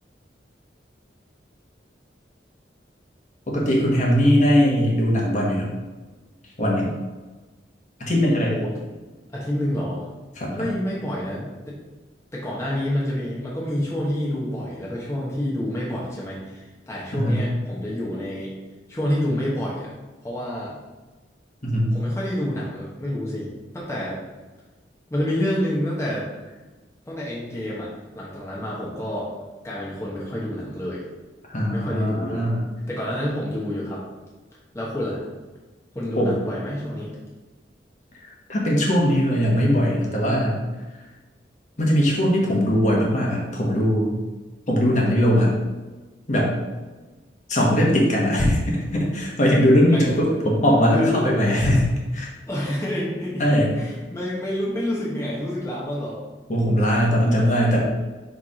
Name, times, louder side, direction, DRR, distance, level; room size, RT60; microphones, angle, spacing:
voice 1, 3.5-5.7 6.6-6.9 8.0-8.5 10.4-10.7 17.1-17.5 21.6-22.0 31.5-32.6 36.2-36.4 38.5-40.6 41.8-44.2 44.7-45.5 46.3-46.5 47.5-52.3 53.4-53.7 56.5-57.8, equal, 45° left, -3 dB, 1.4 m, -20 dB
voice 2, 9.3-10.0 10.5-11.8 12.3-18.5 18.9-19.9 20.2-20.8 21.9-23.5 23.7-24.2 25.1-26.3 27.1-27.9 28.1-29.3 29.6-31.0 31.7-32.5 32.9-34.0 34.7-35.2 35.9-37.1 49.9-50.4 50.9-51.2 52.5-53.4 53.7-56.2, left 1 dB, 15° left, -6 dB, 1.2 m, -28 dB
4.6 x 4.5 x 5.0 m, 1.2 s
head